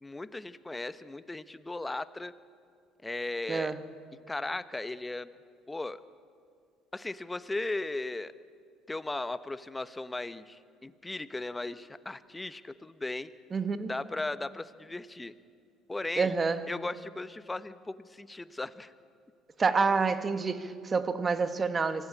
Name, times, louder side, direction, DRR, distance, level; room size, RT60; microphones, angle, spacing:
voice 1, 0.0-2.3 3.0-3.7 4.3-5.3 5.7-6.0 6.9-8.3 8.9-13.3 13.9-15.3 15.9-16.3 16.7-18.9, left 2 dB, 15° left, 14 dB, 1.0 m, -37 dB
voice 2, 3.5-3.8 13.5-13.9 16.2-16.7 19.6-22.1, right 4 dB, 30° right, 10 dB, 1.6 m, -28 dB
25.0 x 16.0 x 8.6 m, 2.4 s
hypercardioid pair, 65°, 0 cm